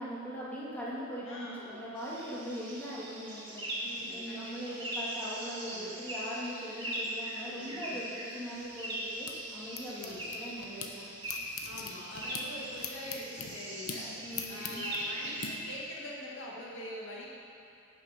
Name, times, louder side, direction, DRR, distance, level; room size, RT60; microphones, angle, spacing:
voice 1, 0.0-3.7 4.1-11.0 14.2-14.8, equal, 10° left, -8 dB, 2.5 m, -41 dB
voice 2, 1.3-1.7 3.8-4.8 5.6-5.9 7.4-8.0 9.9-10.3 11.6-14.1 14.5-17.3, left 1 dB, 60° left, -5 dB, 2.0 m, -44 dB
sound 1, 1.9-15.5, right 1 dB, 20° right, 2.7 m, -40 dB
sound 2, 8.6-10.9 11.2-15.5, left 6 dB, 80° left, 1.0 m, -43 dB
17.0 x 7.1 x 5.3 m, 2.7 s
head